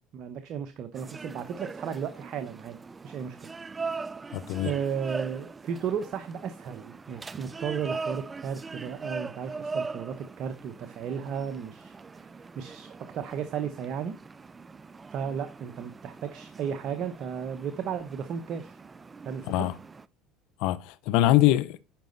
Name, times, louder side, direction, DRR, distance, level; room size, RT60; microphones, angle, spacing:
voice 1, 0.1-2.8 3.0-3.5 4.6-12.3 12.6-14.2 15.1-18.8 19.2-19.7, right 7 dB, 55° right, 0.9 m, -34 dB
sound 1, 0.9-20.1, right 4 dB, 25° right, 0.4 m, -41 dB
voice 2, 4.3-4.7 19.5-19.7 20.6-21.8, left 14 dB, 70° left, 0.6 m, -23 dB
10.5 x 5.2 x 3.9 m
supercardioid pair, 90°, 0 cm